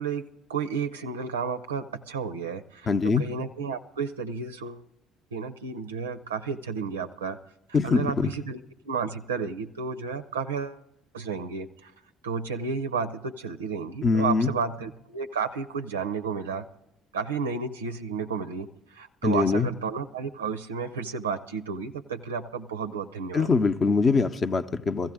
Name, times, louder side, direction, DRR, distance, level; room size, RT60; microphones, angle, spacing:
voice 1, 0.0-4.8 5.3-7.4 7.8-10.8 11.1-11.9 12.2-16.7 17.1-23.5, right 5 dB, 85° right, 0.4 m, -32 dB
voice 2, 2.9-3.3 7.7-8.3 14.0-14.5 19.2-19.7 23.3-25.1, left 4 dB, 35° left, 0.7 m, -23 dB
16.5 x 15.0 x 3.6 m
figure-of-eight pair, 55°, 0 cm